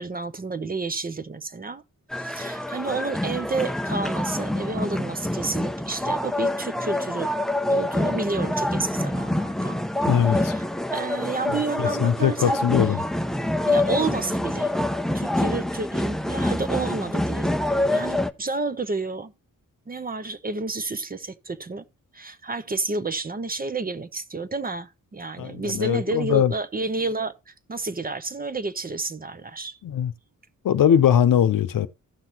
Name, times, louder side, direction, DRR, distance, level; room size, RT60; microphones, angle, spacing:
voice 1, 0.0-1.8 2.1-7.3 7.7-9.8 10.2-12.6 13.7-14.7 15.1-19.3 19.9-21.8 22.1-29.8, right 3 dB, 25° right, 0.7 m, -30 dB
sound 1, 2.1-18.3, left 1 dB, ahead, 0.4 m, -26 dB
voice 2, 10.1-10.5 11.8-13.0 25.4-26.5 29.8-30.1 30.6-31.9, left 9 dB, 75° left, 0.7 m, -21 dB
15.5 x 5.9 x 3.0 m
wide cardioid pair, 115°, 33 cm